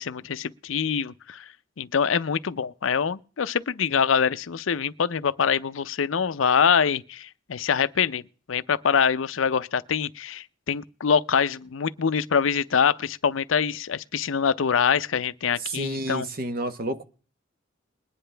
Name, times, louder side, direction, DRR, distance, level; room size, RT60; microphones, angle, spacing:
voice 1, 0.0-1.4 1.8-8.2 8.5-16.3, left 6 dB, 90° left, 0.5 m, -24 dB
voice 2, 15.7-17.0, right 1 dB, 50° right, 1.1 m, -30 dB
21.0 x 10.0 x 3.3 m
head